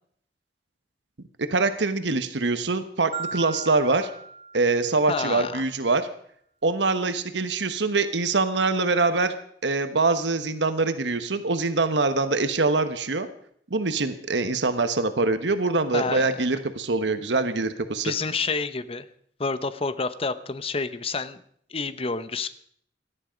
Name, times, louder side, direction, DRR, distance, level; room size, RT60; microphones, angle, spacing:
voice 1, 1.5-4.1 4.5-6.1 6.6-9.3 9.6-13.3 13.7-18.1, right 3 dB, 90° right, 10 dB, 1.2 m, -24 dB
Marimba xylophone, 3.1-5.3, right 5 dB, 35° right, 2.5 m, -38 dB
voice 2, 5.1-5.6 15.9-16.3 18.0-19.1 19.4-21.4 21.7-22.5, left 4 dB, 35° left, 13 dB, 0.9 m, -29 dB
18.0 x 13.5 x 5.2 m, 0.63 s
head